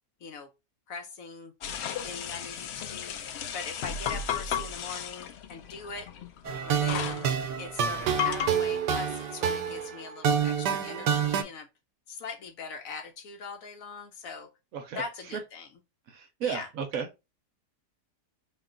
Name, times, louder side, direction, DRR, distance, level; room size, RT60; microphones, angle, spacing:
voice 1, 0.9-1.5 2.0-6.1 6.6-7.3 7.6-11.7 12.1-14.5 15.0-15.7 16.4-16.7, left 5 dB, 65° left, 0.9 m, -41 dB
sound 1, 1.6-8.5, left 8 dB, 85° left, 0.5 m, -34 dB
sound 2, 6.4-11.4, right 7 dB, 90° right, 1.2 m, -28 dB
voice 2, 14.7-15.4 16.1-17.1, right 7 dB, 65° right, 1.0 m, -34 dB
3.5 x 2.4 x 3.6 m
omnidirectional pair, 1.7 m